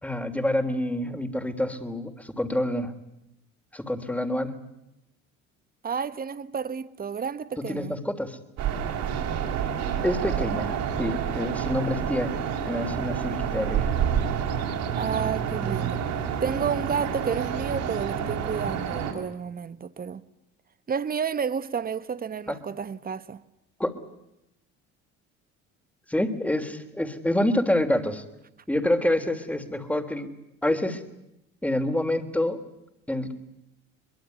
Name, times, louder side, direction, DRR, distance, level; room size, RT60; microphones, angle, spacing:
voice 1, 0.0-2.9 3.7-4.5 7.7-8.4 10.0-12.3 12.7-13.9 22.5-22.6 23.8-23.9 26.1-28.2 28.7-30.3 30.6-31.0 31.6-32.6 33.1-33.3, left 1 dB, 5° left, 3.3 m, -27 dB
voice 2, 5.8-8.0 15.0-16.0 16.4-20.2 20.9-23.4, right 6 dB, 30° right, 1.3 m, -31 dB
sound 1, 8.6-19.1, right 8 dB, 65° right, 5.7 m, -28 dB
23.5 x 21.5 x 9.4 m
supercardioid pair, 80°, 31 cm